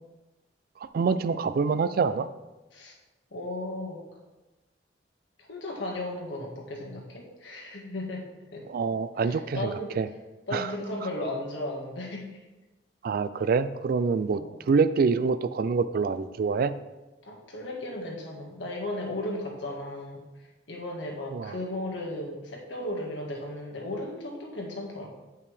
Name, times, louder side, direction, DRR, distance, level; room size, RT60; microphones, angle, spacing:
voice 1, 0.9-2.3 8.7-10.1 10.5-10.7 13.0-14.4 14.7-16.7 21.3-21.5, right 5 dB, 55° right, 13 dB, 0.3 m, -26 dB
voice 2, 3.3-4.0 5.4-8.7 9.2-9.9 10.5-12.3 14.3-14.6 17.2-25.1, left 1 dB, 80° left, -1 dB, 1.7 m, -35 dB
9.1 x 5.5 x 3.3 m, 1.1 s
head